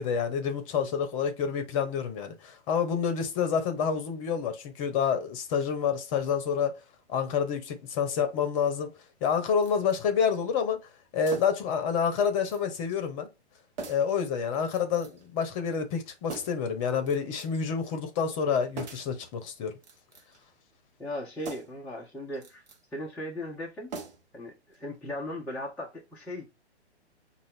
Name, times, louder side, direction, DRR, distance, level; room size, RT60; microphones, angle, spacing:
voice 1, 0.0-6.8 7.1-8.9 9.2-10.8 11.1-13.3 13.9-19.7, left 6 dB, 30° left, 0.9 m, -28 dB
sound 1, 9.6-10.1 11.2-11.7 12.2-12.6 12.9-13.0 13.8-14.2 14.7-15.3 16.3-16.7 17.1-17.7 18.8-19.2 19.8-20.4 21.4-21.9 22.3-22.8 23.9-24.4 24.7-24.8, right 4 dB, 40° right, 1.0 m, -43 dB
voice 2, 21.0-22.6 22.9-24.0 24.3-26.5, left 1 dB, 5° left, 0.5 m, -37 dB
5.4 x 2.5 x 3.3 m
figure-of-eight pair, 125°, 33 cm